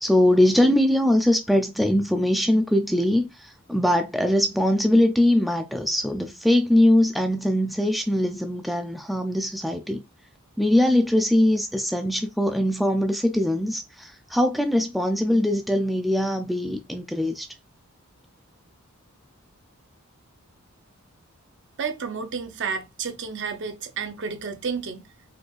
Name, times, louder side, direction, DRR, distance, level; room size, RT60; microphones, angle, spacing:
voice 1, 0.0-10.0 10.6-17.5, left 1 dB, ahead, 0.3 m, -22 dB
voice 2, 21.8-25.0, right 5 dB, 55° right, 0.6 m, -31 dB
4.2 x 3.3 x 2.4 m
head